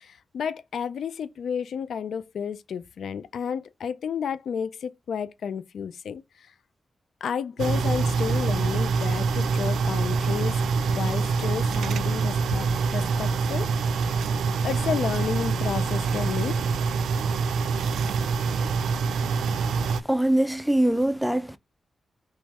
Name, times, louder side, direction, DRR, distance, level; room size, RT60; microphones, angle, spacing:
voice 1, 0.0-6.5 7.2-10.6 10.9-13.9 14.6-16.6, left 7 dB, 80° left, 0.4 m, -31 dB
sound 1, 7.6-20.0, right 5 dB, 90° right, 0.3 m, -25 dB
voice 2, 20.0-21.6, right 1 dB, ahead, 0.6 m, -23 dB
3.4 x 3.1 x 4.8 m
cardioid pair, 45°, 0 cm